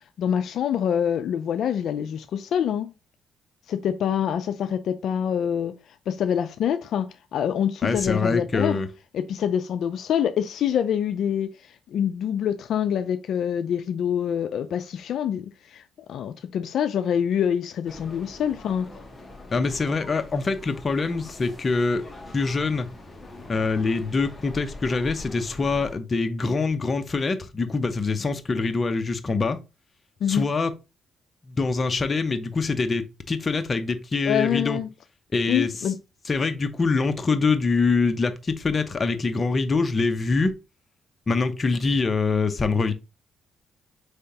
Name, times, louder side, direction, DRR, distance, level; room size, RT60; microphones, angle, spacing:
voice 1, 0.2-2.9 3.7-5.8 6.1-8.8 9.1-15.8 16.1-18.9 30.2-30.5 34.2-34.9 35.5-36.0, left 9 dB, 70° left, 0.3 m, -25 dB
voice 2, 7.8-8.9 19.5-22.1 22.3-22.9 23.5-29.6 30.3-30.7 31.5-34.8 35.3-35.7 36.3-40.5 41.3-42.9, left 4 dB, 35° left, 0.6 m, -24 dB
sound 1, 17.9-26.0, left 2 dB, 20° left, 1.1 m, -43 dB
4.6 x 3.3 x 2.8 m
cardioid pair, 90°, 0 cm